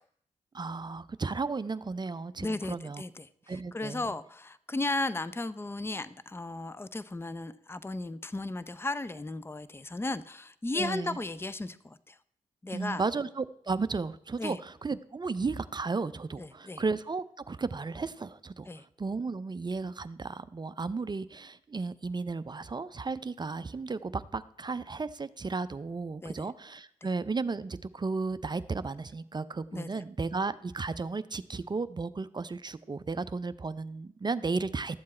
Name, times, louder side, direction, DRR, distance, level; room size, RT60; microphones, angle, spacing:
voice 1, 0.5-3.0 3.5-4.1 10.7-11.2 12.7-18.7 19.0-35.0, right 4 dB, 30° right, 14 dB, 0.5 m, -34 dB
voice 2, 2.4-12.2 12.6-13.0 14.4-14.6 16.4-16.8 18.7-18.8 26.2-26.5 29.7-30.0, left 2 dB, 15° left, 15 dB, 0.6 m, -35 dB
12.5 x 7.5 x 4.3 m, 0.73 s
supercardioid pair, 40°, 14 cm